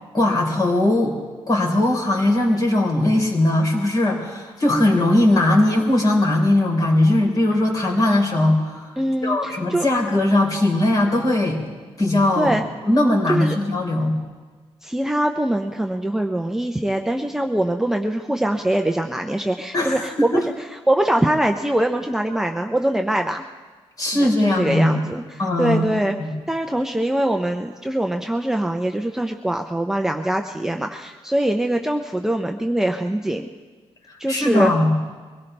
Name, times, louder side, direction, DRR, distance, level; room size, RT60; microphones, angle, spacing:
voice 1, 0.1-1.2 1.5-8.9 9.2-11.6 12.0-12.5 12.8-14.2 19.7-20.4 24.0-25.0 25.4-25.8 26.2-26.3 34.1-34.9, left 1 dB, 35° left, 0 dB, 3.8 m, -19 dB
voice 2, 9.0-9.9 12.4-12.6 13.3-13.6 14.8-23.5 24.1-26.2 26.5-33.5 34.2-34.7, right 1 dB, 5° right, 3 dB, 0.6 m, -23 dB
23.5 x 17.0 x 3.4 m, 1.4 s
cardioid pair, 120°, 10 cm